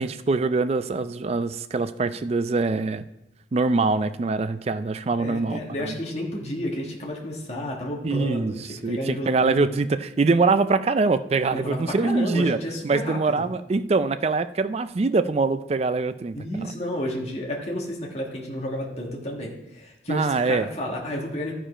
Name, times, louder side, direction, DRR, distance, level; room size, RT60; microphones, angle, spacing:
voice 1, 0.0-3.0 3.5-5.9 8.0-12.6 12.8-16.7 20.1-20.7, right 3 dB, 35° right, 12 dB, 0.4 m, -24 dB
voice 2, 5.2-9.7 11.5-13.4 16.3-21.5, left 1 dB, 35° left, -2 dB, 1.5 m, -31 dB
12.0 x 5.0 x 5.0 m, 0.87 s
head